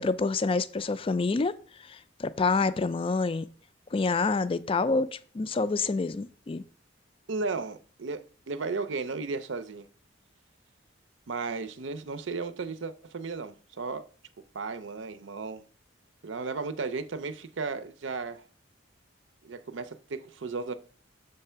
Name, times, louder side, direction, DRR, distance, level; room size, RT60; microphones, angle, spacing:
voice 1, 0.0-1.6 1.8-3.5 3.9-6.6, left 3 dB, 30° left, 0.3 m, -27 dB
voice 2, 7.3-9.8 11.3-14.0 14.5-15.6 16.2-18.4 19.4-20.7, right 4 dB, 75° right, 0.6 m, -34 dB
6.7 x 3.3 x 5.6 m
head